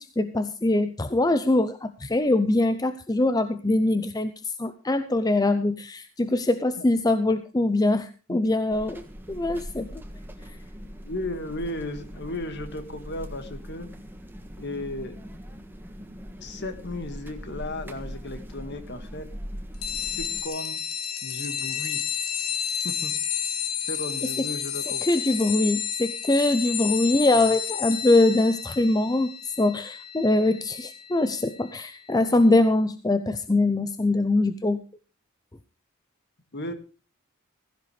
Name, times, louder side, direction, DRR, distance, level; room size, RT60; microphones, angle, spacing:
voice 1, 0.0-9.0 9.3-10.0 25.0-29.3 29.6-34.8, left 2 dB, 15° left, 11 dB, 0.6 m, -23 dB
sound 1, 8.7-20.4, equal, 10° right, 1.5 m, -41 dB
voice 2, 11.0-13.9 14.6-15.2 16.4-19.3 19.9-20.8 21.2-22.0 22.8-23.1 23.9-25.2 36.5-36.7, left 1 dB, 50° left, 9 dB, 2.0 m, -35 dB
sound 2, 19.8-31.9, left 9 dB, 85° left, 2.4 m, -31 dB
16.0 x 15.5 x 3.3 m, 0.35 s
head